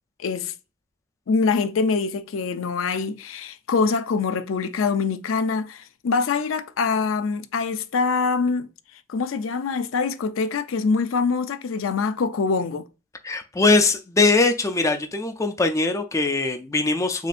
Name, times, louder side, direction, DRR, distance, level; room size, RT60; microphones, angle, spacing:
voice 1, 0.2-0.5 1.3-8.7 9.1-12.8, left 4 dB, 80° left, 0.4 m, -24 dB
voice 2, 13.2-17.3, left 3 dB, 15° left, 0.4 m, -21 dB
6.2 x 2.6 x 2.5 m
head